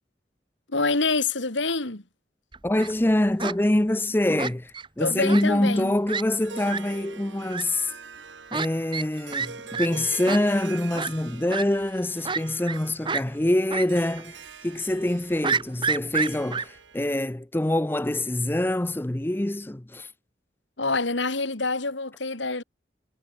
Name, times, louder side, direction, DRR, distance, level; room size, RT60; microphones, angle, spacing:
voice 1, 0.7-2.0 5.0-5.9 20.8-22.6, left 3 dB, 85° left, 2.9 m, -26 dB
Fowl, 2.5-2.9 3.4-3.6 4.4-4.9 5.3-5.4 5.7-5.8 6.1-6.2 6.7-6.8 7.5-7.6 8.5-8.7 8.9-9.1 9.3-9.5 9.7-9.9 10.3-10.4 11.0-11.1 11.5-11.6 12.2-12.8 13.1-13.2 13.7-13.9 14.2-14.3 15.4-16.6, right 5 dB, 25° right, 1.1 m, -28 dB
voice 2, 2.6-7.9 8.5-20.1, left 1 dB, 10° left, 0.5 m, -25 dB
Harp, 6.3-17.2, right 5 dB, 85° right, 2.2 m, -44 dB
head